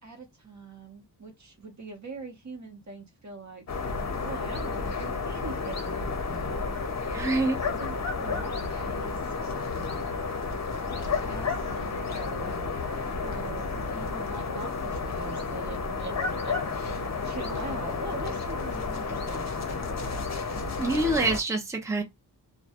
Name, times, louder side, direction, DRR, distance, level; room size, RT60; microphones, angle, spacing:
voice 1, 0.0-3.6 4.2-10.1 10.9-20.1, right 3 dB, 45° right, 0.8 m, -43 dB
sound 1, 3.7-21.4, left 4 dB, 40° left, 0.6 m, -31 dB
voice 2, 7.1-7.6 20.8-22.0, right 2 dB, 5° right, 0.6 m, -26 dB
2.2 x 2.1 x 2.8 m
wide cardioid pair, 85°, 40 cm